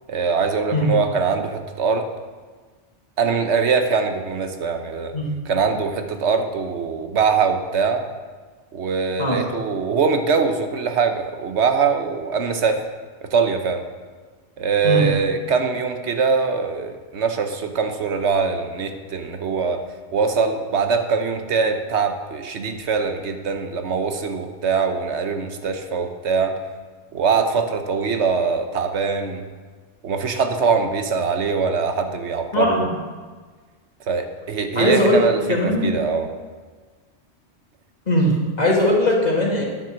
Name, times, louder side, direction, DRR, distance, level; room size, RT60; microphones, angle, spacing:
voice 1, 0.1-2.1 3.2-5.1 5.5-8.0 8.7-12.8 13.2-13.8 14.6-19.8 20.1-26.6 27.1-29.4 30.0-32.9 34.1-36.3, right 5 dB, 75° right, 6 dB, 1.2 m, -22 dB
voice 2, 32.5-32.9 34.8-35.2 35.5-35.9 38.1-39.6, left 1 dB, 35° left, -2 dB, 2.1 m, -19 dB
9.9 x 7.3 x 6.3 m, 1.4 s
omnidirectional pair, 1.2 m